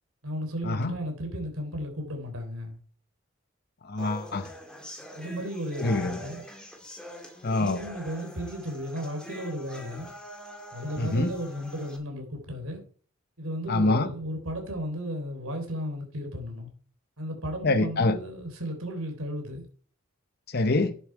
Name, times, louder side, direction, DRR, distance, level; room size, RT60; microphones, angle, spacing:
voice 1, 0.2-2.8 5.2-6.4 7.6-10.1 10.7-12.8 13.4-16.7 17.2-19.7, equal, 85° right, 3.6 m, -34 dB
voice 2, 3.8-4.5 5.8-6.2 7.4-7.8 11.0-11.3 13.7-14.1 17.6-18.2 20.5-21.0, left 2 dB, 45° left, 0.8 m, -25 dB
sound 1, 4.0-12.0, equal, 5° left, 2.1 m, -44 dB
10.5 x 7.2 x 4.5 m
head